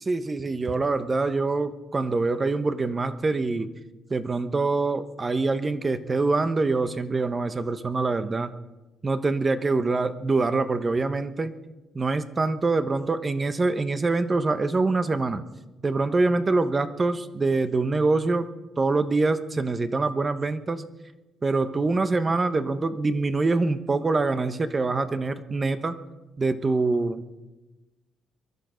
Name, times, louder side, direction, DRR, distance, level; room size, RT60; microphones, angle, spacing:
voice 1, 0.1-3.7 4.1-8.5 9.0-11.5 11.9-15.4 15.8-18.5 18.8-20.8 21.4-26.0 26.4-27.2, right 3 dB, 30° right, 11 dB, 1.1 m, -25 dB
22.5 x 12.5 x 5.2 m, 1.1 s
cardioid pair, 90°, 0 cm